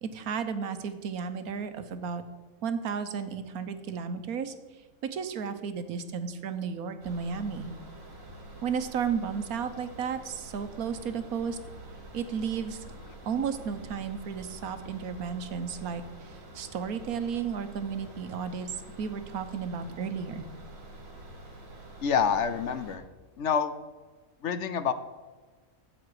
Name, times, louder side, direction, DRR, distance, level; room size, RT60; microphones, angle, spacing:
voice 1, 0.0-2.2 2.6-4.5 5.0-7.7 8.6-11.6 12.1-13.0 13.3-20.5, right 6 dB, 85° right, 10 dB, 1.4 m, -33 dB
sound 1, 7.0-23.0, right 1 dB, 65° right, 2.4 m, -47 dB
voice 2, 22.0-23.0 23.4-23.7 24.4-24.9, left 7 dB, 60° left, 11 dB, 0.9 m, -27 dB
13.5 x 8.6 x 4.8 m, 1.3 s
omnidirectional pair, 1.5 m